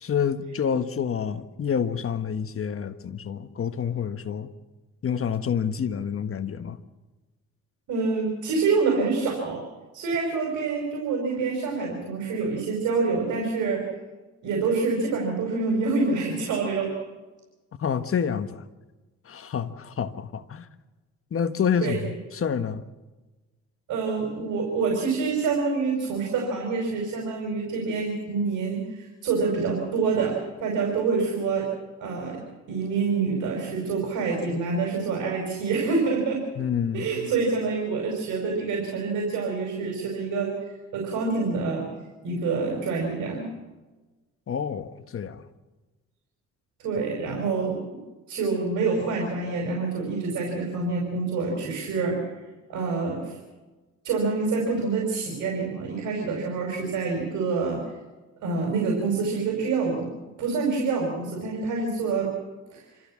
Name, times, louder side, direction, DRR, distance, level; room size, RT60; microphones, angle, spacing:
voice 1, 0.0-4.5 5.0-6.8 17.8-18.6 19.2-20.7 21.3-22.8 36.6-37.1 44.5-45.5, left 7 dB, 45° left, 10 dB, 1.4 m, -28 dB
voice 2, 7.9-9.6 9.9-13.9 14.4-16.9 21.8-22.0 23.9-31.7 32.0-32.4 32.7-36.4 36.9-40.6 40.9-41.9 42.2-43.5 46.8-47.8 48.3-52.4 52.7-53.4 54.0-57.8 58.4-60.1 60.4-62.3 62.7-62.8, right 4 dB, 85° right, 0 dB, 5.4 m, -26 dB
27.5 x 14.0 x 7.5 m, 1.2 s
cardioid pair, 90°, 30 cm